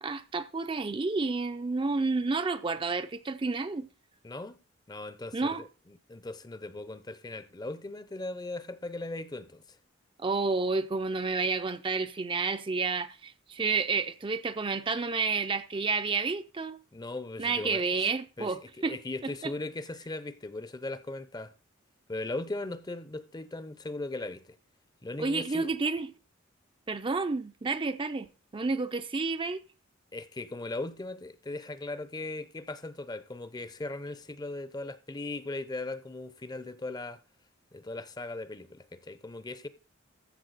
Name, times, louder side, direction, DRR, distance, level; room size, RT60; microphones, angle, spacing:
voice 1, 0.0-3.9 5.3-5.6 10.2-16.8 17.4-18.6 18.8-19.0 19.4-19.5 25.2-26.1 26.9-28.3 28.5-29.6, right 4 dB, 25° right, 0.5 m, -30 dB
voice 2, 4.2-4.6 4.9-9.6 16.9-17.8 18.4-21.5 22.1-24.6 25.0-25.7 30.1-37.2 37.7-39.7, left 2 dB, 20° left, 0.6 m, -38 dB
14.0 x 6.8 x 4.0 m
head